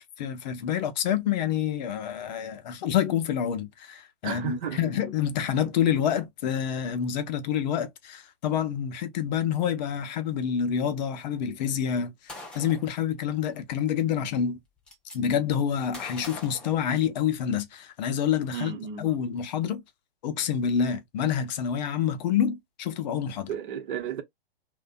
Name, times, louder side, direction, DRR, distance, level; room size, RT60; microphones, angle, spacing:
voice 1, 0.0-14.6 15.1-19.8 20.2-23.5, left 8 dB, 45° left, 0.6 m, -27 dB
voice 2, 4.2-4.8 18.5-19.1 23.5-24.2, right 8 dB, 55° right, 0.8 m, -33 dB
Gunshot gunfire, 12.3-12.9 14.1-14.2 14.5-15.2 15.9-17.4, left 2 dB, 5° left, 0.3 m, -43 dB
2.5 x 2.2 x 2.4 m
hypercardioid pair, 120°, 30 cm